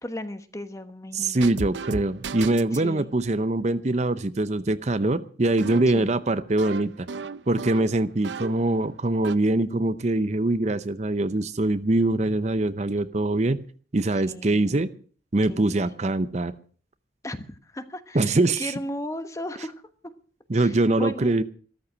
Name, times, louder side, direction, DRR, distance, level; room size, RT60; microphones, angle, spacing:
voice 1, 0.0-1.5 2.7-3.1 5.9-6.1 14.3-14.9 15.5-15.7 17.2-19.7 20.5-21.4, left 1 dB, 15° left, 10 dB, 1.2 m, -36 dB
voice 2, 1.1-7.1 7.5-13.6 13.9-14.9 15.3-16.5 18.1-18.7 20.5-21.4, right 2 dB, 40° right, 13 dB, 0.7 m, -23 dB
sound 1, 1.4-2.9 5.6-8.7 9.0-9.3, right 4 dB, 80° right, 0.6 m, -35 dB
14.5 x 13.5 x 6.2 m, 0.43 s
head